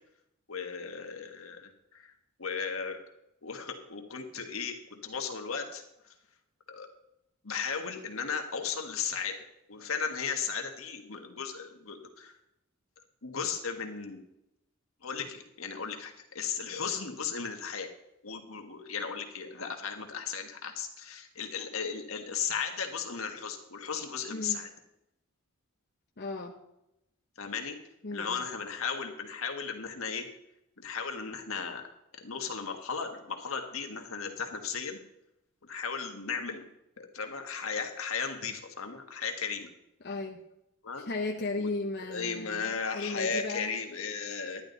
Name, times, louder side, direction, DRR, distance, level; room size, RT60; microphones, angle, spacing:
voice 1, 0.5-2.1 2.4-3.0 3.4-5.8 6.7-6.9 7.4-9.3 9.7-12.4 13.2-14.2 15.0-17.9 18.2-24.7 27.4-27.8 28.1-30.3 30.8-31.8 32.2-35.0 35.6-36.7 37.0-39.7 40.8-41.0 41.6-41.7 42.1-44.6, left 6 dB, 80° left, 4 dB, 1.6 m, -36 dB
voice 2, 26.2-26.6 28.0-28.5 40.0-40.4 41.0-43.7, left 3 dB, 55° left, 0 dB, 1.0 m, -35 dB
11.5 x 10.5 x 4.0 m, 0.86 s
head